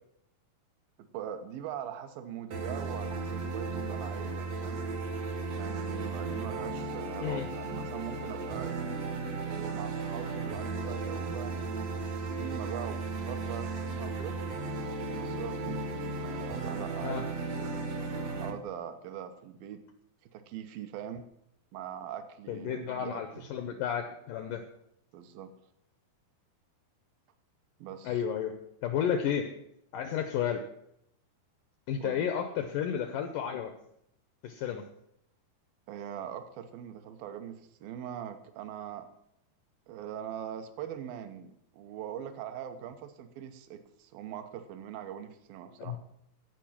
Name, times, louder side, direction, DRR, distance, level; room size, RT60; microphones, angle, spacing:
voice 1, 1.0-4.8 5.5-8.9 9.5-14.4 15.2-17.8 18.4-19.8 20.3-21.3 21.7-23.5 25.1-25.5 27.8-28.2 32.0-32.2 35.9-39.1 39.9-46.0, right 9 dB, 75° right, 9 dB, 2.5 m, -42 dB
sound 1, 2.5-18.5, right 3 dB, 60° right, 1.8 m, -35 dB
voice 2, 22.5-24.7 28.0-28.6 28.8-29.5 29.9-30.7 31.9-33.7 34.4-34.8 45.8-46.0, left 8 dB, 80° left, 7 dB, 2.0 m, -32 dB
15.5 x 5.3 x 7.4 m, 0.76 s
omnidirectional pair, 4.6 m